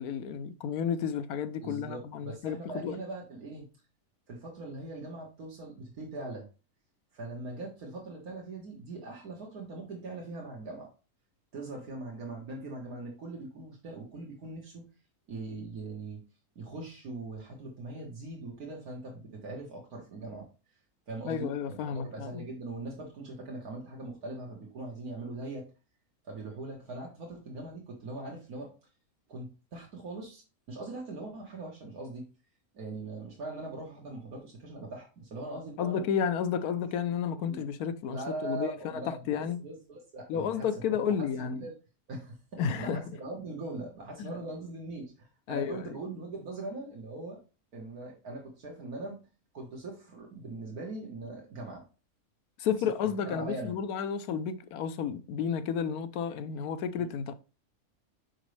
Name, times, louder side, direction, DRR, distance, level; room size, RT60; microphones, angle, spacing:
voice 1, 0.0-3.0 21.3-22.4 35.8-39.6 40.3-41.6 42.6-43.0 44.2-44.3 45.5-45.8 52.6-57.3, left 7 dB, 90° left, 1.2 m, -32 dB
voice 2, 1.6-3.7 4.3-6.5 7.1-10.9 11.5-14.8 15.3-16.2 16.6-20.5 21.1-21.5 21.9-25.6 26.2-28.7 29.3-30.4 30.7-32.2 32.7-36.0 37.5-37.6 38.0-40.7 41.2-41.7 42.1-47.4 47.7-49.2 49.5-51.8 52.8-53.8 57.0-57.1, right 2 dB, 80° right, 1.9 m, -41 dB
6.4 x 5.2 x 3.2 m
omnidirectional pair, 1.5 m